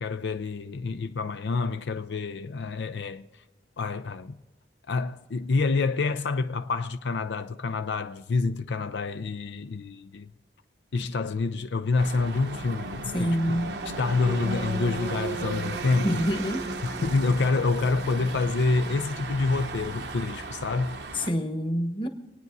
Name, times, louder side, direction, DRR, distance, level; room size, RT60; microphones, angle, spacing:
voice 1, 0.0-3.2 3.8-4.4 4.9-10.3 10.9-13.6 13.9-16.2 16.8-21.0, left 3 dB, 80° left, 0.5 m, -27 dB
sound 1, 12.0-21.3, right 2 dB, 75° right, 0.9 m, -35 dB
voice 2, 13.1-13.7 16.0-16.6 21.1-22.1, equal, 30° left, 1.2 m, -26 dB
26.0 x 9.4 x 4.0 m
head